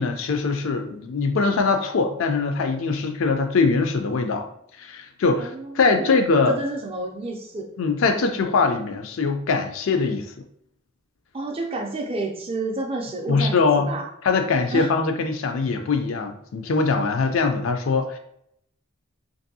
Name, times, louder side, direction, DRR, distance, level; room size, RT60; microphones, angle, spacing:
voice 1, 0.0-4.5 4.8-6.6 7.8-10.3 13.3-13.9 14.2-18.2, left 4 dB, 70° left, 6 dB, 0.4 m, -22 dB
voice 2, 5.4-6.1 6.5-7.7 11.3-14.1 14.7-14.9, right 2 dB, 25° right, 2 dB, 0.4 m, -30 dB
2.6 x 2.6 x 2.7 m, 0.72 s
head